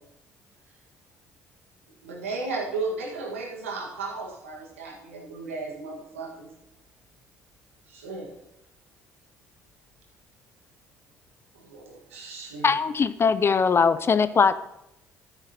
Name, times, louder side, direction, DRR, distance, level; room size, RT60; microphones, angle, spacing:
voice 1, 0.1-1.8 3.4-3.7 4.7-5.4 6.1-7.1 7.9-8.0 9.4-9.6 10.6-11.1 12.0-12.1, left 1 dB, 70° left, -2 dB, 3.6 m, -69 dB
voice 2, 2.0-6.5 7.9-8.3 11.6-12.7, right 3 dB, 90° right, 0 dB, 1.7 m, -34 dB
voice 3, 12.6-14.5, left 5 dB, 35° left, 14 dB, 0.5 m, -21 dB
12.5 x 9.8 x 2.9 m, 0.84 s
hypercardioid pair, 55°, 7 cm